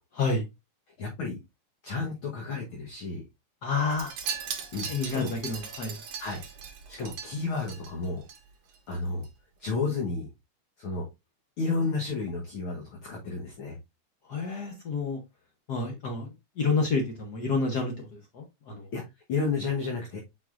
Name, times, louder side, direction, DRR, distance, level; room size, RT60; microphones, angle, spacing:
voice 1, 1.0-1.4 1.8-3.2 4.7-5.3 6.2-6.4 6.9-8.2 8.9-9.2 9.6-10.3 10.8-11.1 11.6-13.8 18.9-19.0 19.3-20.2, left 4 dB, 55° left, 0 dB, 1.6 m, -31 dB
voice 2, 3.6-4.1 4.8-6.0 14.3-15.2 15.7-18.1 18.3-18.9, left 4 dB, 90° left, 2 dB, 0.8 m, -29 dB
Wind chime, 3.9-8.4 8.7-9.0 9.2-9.3, right 7 dB, 65° right, 2.3 m, -39 dB
7.8 x 4.9 x 2.5 m, 0.22 s
omnidirectional pair, 3.4 m